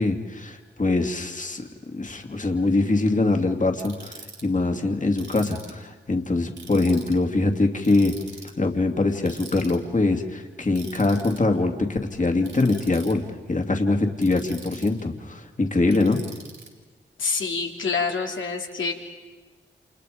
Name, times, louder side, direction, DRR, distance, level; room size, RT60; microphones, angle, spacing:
voice 1, 0.0-1.6 1.9-8.1 8.6-13.2 13.5-16.2, left 2 dB, 40° left, 4 dB, 2.7 m, -23 dB
Ratchet pawl, 3.8-4.4 5.2-5.8 6.6-7.2 7.8-8.5 9.3-9.8 10.8-11.4 12.4-13.1 14.2-15.0 15.9-16.7, right 4 dB, 75° right, 4.2 m, -43 dB
voice 2, 17.2-18.9, left 4 dB, 80° left, 1 dB, 3.1 m, -26 dB
29.0 x 28.5 x 5.1 m, 1.3 s
cardioid pair, 50°, 20 cm